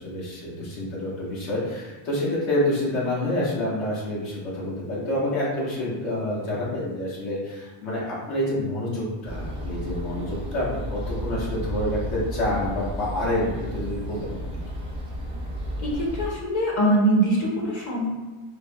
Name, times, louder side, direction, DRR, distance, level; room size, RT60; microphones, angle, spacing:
voice 1, 0.0-14.4, left 1 dB, 70° left, -7 dB, 1.2 m, -28 dB
sound 1, 9.2-16.3, equal, 10° right, 0.4 m, -33 dB
voice 2, 15.8-18.1, right 1 dB, 35° left, -4 dB, 0.8 m, -23 dB
3.3 x 2.1 x 2.2 m, 1.2 s
cardioid pair, 130°, 49 cm